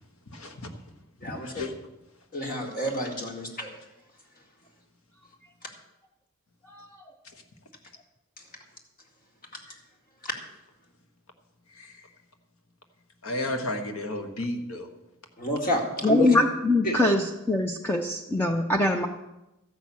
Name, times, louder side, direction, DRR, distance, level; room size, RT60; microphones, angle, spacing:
voice 1, 0.3-0.7 1.2-1.7 11.7-12.0 13.2-14.9, left 1 dB, 70° left, 6 dB, 1.4 m, -33 dB
voice 2, 1.2-1.6 2.3-3.7 10.2-10.3 15.4-16.4 16.8-17.0, left 1 dB, 40° left, 1 dB, 2.2 m, -29 dB
voice 3, 16.0-19.1, left 2 dB, 10° left, 2 dB, 0.6 m, -23 dB
13.5 x 6.1 x 8.4 m, 0.96 s
head